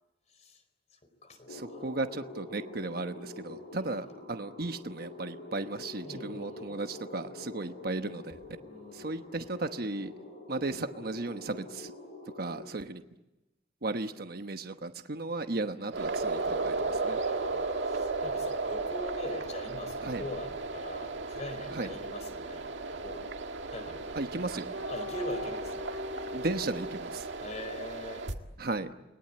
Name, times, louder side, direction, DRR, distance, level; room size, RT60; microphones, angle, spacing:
voice 1, 0.3-0.6 1.2-1.9 3.4-4.1 6.0-6.8 8.6-9.5 17.1-23.3 23.7-24.1 24.9-25.9 27.4-28.3, left 1 dB, 40° left, 9 dB, 4.5 m, -43 dB
sound 1, 1.5-12.7, left 2 dB, 55° left, 7.1 m, -46 dB
voice 2, 1.5-8.4 8.9-10.1 10.5-11.9 12.4-13.0 13.8-17.2 20.0-20.2 21.7-21.9 24.2-24.7 26.2-27.3 28.6-28.9, right 2 dB, 55° right, 8 dB, 1.1 m, -35 dB
sound 2, 15.9-28.3, right 3 dB, 75° right, 1.9 m, -35 dB
29.5 x 21.0 x 8.7 m, 1.0 s
head